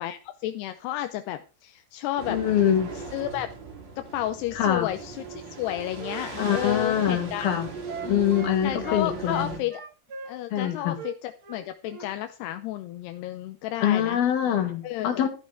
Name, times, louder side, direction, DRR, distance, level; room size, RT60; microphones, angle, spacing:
voice 1, 0.0-2.4 3.1-3.5 4.0-7.5 8.0-8.2 8.6-9.8 10.3-14.2 14.8-15.3, left 13 dB, 75° left, 9 dB, 2.6 m, -32 dB
sound 1, 2.2-9.6, right 4 dB, 30° right, 2.5 m, -38 dB
voice 2, 2.3-2.9 4.6-4.9 6.4-7.7 8.1-9.5 10.5-11.0 13.8-15.3, left 10 dB, 60° left, 6 dB, 4.0 m, -24 dB
Wind instrument woodwind instrument, 5.1-8.6 8.8-12.1, right 4 dB, 80° right, 1.1 m, -40 dB
14.0 x 12.0 x 3.4 m, 0.32 s
omnidirectional pair, 5.2 m